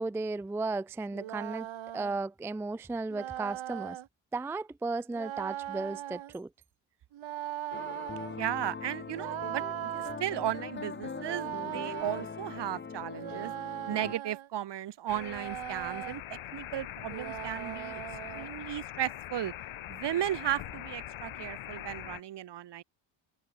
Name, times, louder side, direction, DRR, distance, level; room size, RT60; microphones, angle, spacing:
voice 1, 0.0-1.7 1.9-4.0 4.3-6.5, right 3 dB, 5° right, 0.3 m, -35 dB
sound 1, 1.1-2.2 3.1-4.1 5.1-6.3 7.1-8.4 9.1-10.2 11.1-12.2 13.1-14.5 15.1-16.2 17.1-18.5, right 12 dB, 75° right, 3.0 m, -39 dB
sound 2, 7.7-14.1, left 5 dB, 25° left, 1.1 m, -41 dB
voice 2, 8.4-13.5 13.9-18.0 18.3-19.5 19.9-22.8, right 12 dB, 60° right, 1.2 m, -35 dB
sound 3, 15.1-22.2, left 12 dB, 80° left, 3.9 m, -42 dB
cardioid pair, 105°, 47 cm